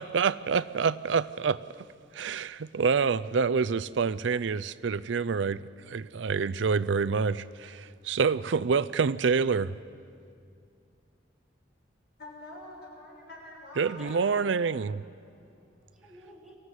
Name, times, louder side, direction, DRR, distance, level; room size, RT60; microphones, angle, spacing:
voice 1, 0.0-1.6 2.1-9.8 13.8-15.0, right 5 dB, 75° right, 0.5 m, -27 dB
voice 2, 12.2-14.4, left 1 dB, 60° left, 6.1 m, -46 dB
voice 3, 14.0-16.6, right 1 dB, ahead, 4.0 m, -53 dB
23.0 x 15.0 x 9.6 m
head